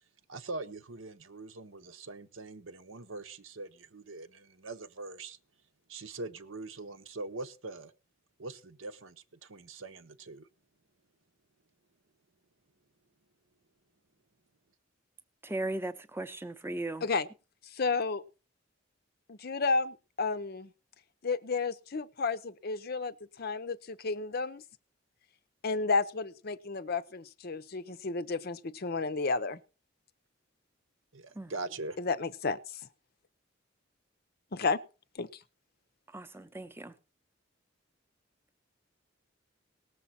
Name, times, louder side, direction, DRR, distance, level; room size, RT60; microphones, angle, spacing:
voice 1, 0.3-5.4 5.9-7.9 8.4-10.5 31.1-32.0, right 3 dB, 70° right, 0.9 m, -42 dB
voice 2, 15.4-17.1 31.4-31.5 36.1-36.9, right 2 dB, 10° right, 0.7 m, -37 dB
voice 3, 17.6-18.2 19.3-20.7 21.2-24.6 25.6-29.6 32.0-32.8 34.5-34.8 35.1-35.3, left 4 dB, 45° left, 0.6 m, -32 dB
18.5 x 7.1 x 4.2 m
head